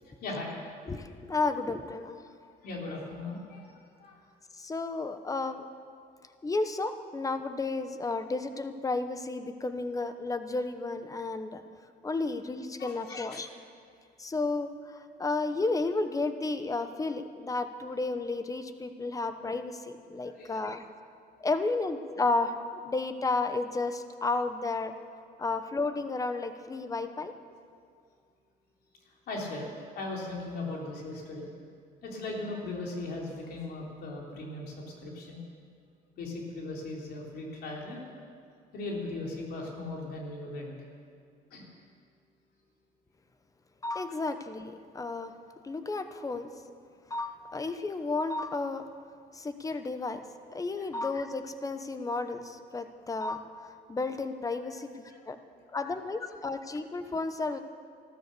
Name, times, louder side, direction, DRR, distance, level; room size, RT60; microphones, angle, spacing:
voice 1, 0.2-0.5 2.6-3.7 4.0-4.2 12.8-13.4 20.3-20.6 29.3-31.5 32.0-34.7 35.0-35.4 36.2-38.0 38.7-40.7 41.5-41.6 50.8-50.9 55.1-55.3 55.8-55.9, left 2 dB, 70° left, -1 dB, 3.5 m, -38 dB
voice 2, 0.9-2.2 4.6-5.6 6.4-11.6 12.0-13.5 14.2-20.8 21.4-22.6 22.8-24.9 25.4-27.3 43.8-45.3 45.6-46.5 47.1-48.9 49.3-50.2 50.5-53.5 53.9-55.4 55.7-57.6, left 3 dB, 20° left, 9 dB, 0.9 m, -32 dB
13.5 x 13.0 x 6.8 m, 2.2 s
cardioid pair, 110°, 17 cm